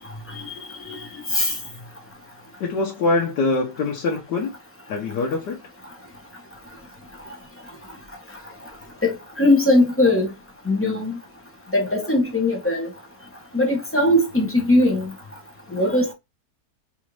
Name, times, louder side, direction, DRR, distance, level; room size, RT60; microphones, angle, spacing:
voice 1, 2.6-4.5 4.9-5.6, left 3 dB, 75° left, 1.4 m, -24 dB
voice 2, 9.4-10.3 10.7-11.1 11.7-12.9 13.5-15.1 15.7-16.1, left 1 dB, 10° left, 0.7 m, -19 dB
4.3 x 2.5 x 3.1 m
omnidirectional pair, 1.9 m